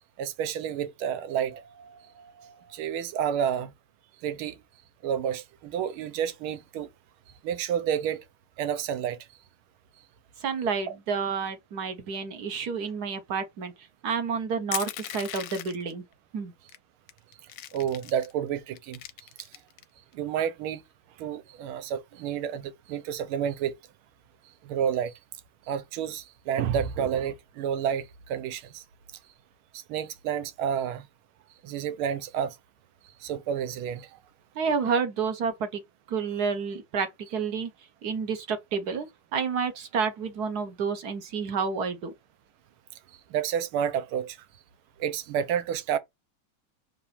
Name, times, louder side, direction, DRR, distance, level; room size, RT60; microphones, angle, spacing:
voice 1, 0.2-3.7 4.2-4.6 5.0-6.9 7.4-8.2 8.6-9.2 10.9-11.0 17.7-19.0 20.1-20.8 21.2-23.7 24.6-25.1 25.7-28.8 29.7-31.1 31.6-32.6 33.2-34.1 43.3-44.4 45.0-46.0, right 8 dB, 80° right, 1.6 m, -30 dB
voice 2, 10.4-13.7 14.0-16.0 16.3-16.5 34.6-35.7 36.1-37.1 37.3-37.7 38.0-39.1 39.3-42.1, right 5 dB, 55° right, 1.3 m, -29 dB
Crushing, 14.7-15.9 16.7-16.8 17.1-18.3 18.8-19.8, left 12 dB, 70° left, 1.2 m, -37 dB
6.0 x 3.9 x 4.2 m
omnidirectional pair, 2.3 m